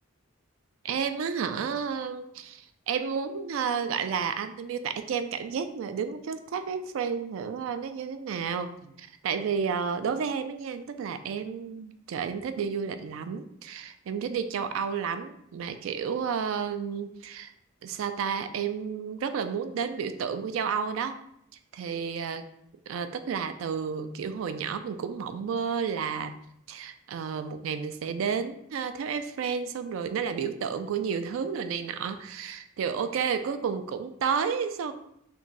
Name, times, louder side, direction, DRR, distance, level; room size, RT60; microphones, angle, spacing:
voice 1, 0.8-17.5 17.8-21.2 21.7-22.5 22.9-26.4 26.7-34.9, right 6 dB, 80° right, 10 dB, 0.3 m, -31 dB
3.0 x 2.6 x 3.7 m, 0.75 s
head